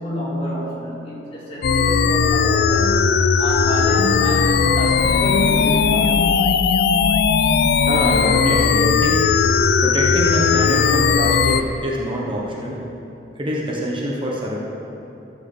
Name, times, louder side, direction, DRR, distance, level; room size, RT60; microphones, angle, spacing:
voice 1, 0.0-6.3, left 1 dB, 30° left, -6 dB, 2.5 m, -28 dB
sound 1, 1.6-11.6, left 5 dB, 60° left, 0.4 m, -17 dB
voice 2, 7.8-9.3 9.8-12.8 13.3-14.6, equal, 25° right, -3 dB, 1.1 m, -24 dB
13.5 x 4.7 x 7.2 m, 2.9 s
head